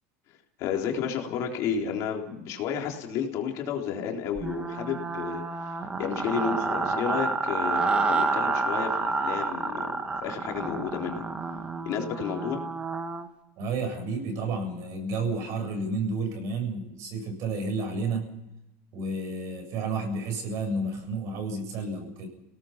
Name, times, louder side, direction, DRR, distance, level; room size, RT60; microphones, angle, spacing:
voice 1, 0.6-11.3 11.8-12.6, left 7 dB, 50° left, 1 dB, 3.8 m, -32 dB
sound 1, 4.4-13.3, right 3 dB, 15° right, 1.7 m, -29 dB
voice 2, 13.6-18.3 18.9-22.3, right 3 dB, 50° right, 5 dB, 7.6 m, -31 dB
29.0 x 18.5 x 5.9 m, 0.90 s
supercardioid pair, 145°, 7 cm